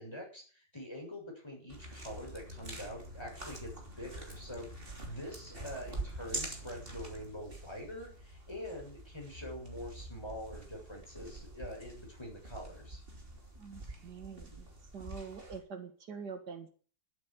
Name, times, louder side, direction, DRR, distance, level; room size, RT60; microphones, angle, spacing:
voice 1, 0.0-13.0, equal, 15° left, -1 dB, 7.6 m, -45 dB
sound 1, 1.7-15.6, right 1 dB, 30° right, 3.4 m, -46 dB
voice 2, 13.6-14.7 14.9-16.7, right 6 dB, 75° right, 8 dB, 2.2 m, -45 dB
13.0 x 8.7 x 9.8 m, 0.42 s
omnidirectional pair, 1.8 m